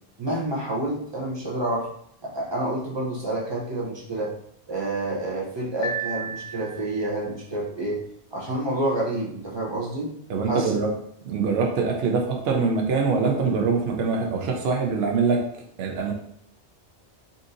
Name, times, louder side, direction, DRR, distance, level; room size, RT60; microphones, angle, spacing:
voice 1, 0.2-1.9 2.2-4.3 4.7-8.0 8.3-10.1 10.4-10.8, right 1 dB, 30° right, -4 dB, 0.6 m, -28 dB
Piano, 5.8-7.1, right 4 dB, 55° left, 0.8 m, -32 dB
voice 2, 10.3-10.9 11.2-15.4 15.8-16.1, right 4 dB, 65° right, 1 dB, 0.8 m, -23 dB
4.0 x 2.6 x 2.5 m, 0.70 s
omnidirectional pair, 1.2 m